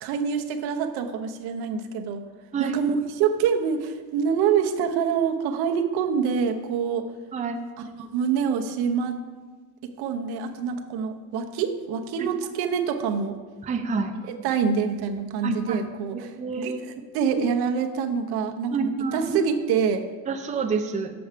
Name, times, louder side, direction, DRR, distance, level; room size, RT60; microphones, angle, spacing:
voice 1, 0.0-2.2 2.6-7.0 7.8-9.2 10.0-13.4 14.3-20.1, right 6 dB, 70° right, 5 dB, 0.9 m, -26 dB
voice 2, 13.6-14.1 15.4-15.8 16.1-16.8 18.7-19.4 20.3-21.1, right 5 dB, 20° right, 5 dB, 0.5 m, -28 dB
7.0 x 7.0 x 5.0 m, 1.4 s
cardioid pair, 125°, 40 cm